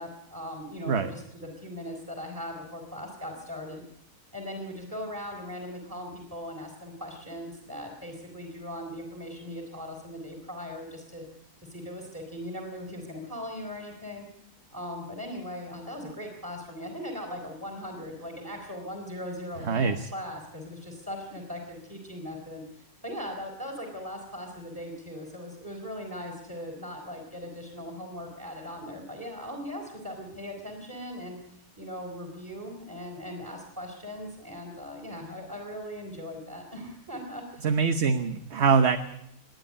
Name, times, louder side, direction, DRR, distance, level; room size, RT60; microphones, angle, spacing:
voice 1, 0.0-3.8 4.3-11.2 11.7-14.3 14.7-37.7, left 1 dB, 10° right, 1 dB, 3.9 m, -39 dB
voice 2, 19.7-20.1 37.6-39.0, right 5 dB, 50° right, 9 dB, 1.2 m, -23 dB
27.0 x 10.5 x 9.8 m, 0.78 s
omnidirectional pair, 1.6 m